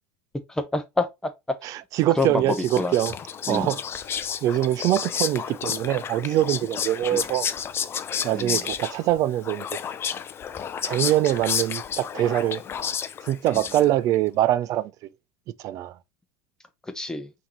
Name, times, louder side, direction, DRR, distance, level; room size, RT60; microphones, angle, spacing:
voice 1, 0.5-1.3 2.2-2.5 2.8-2.9 3.5-3.7 7.1-7.2 8.3-8.6 16.9-17.3, left 2 dB, 10° left, 0.9 m, -27 dB
voice 2, 1.6-3.1 3.5-3.8 4.4-7.5 8.2-9.7 10.8-12.6 13.3-14.9 15.6-16.0, right 13 dB, 50° right, 0.5 m, -23 dB
Whispering, 2.2-14.1, left 8 dB, 35° left, 0.5 m, -31 dB
5.6 x 2.9 x 3.1 m
hypercardioid pair, 85°, 7 cm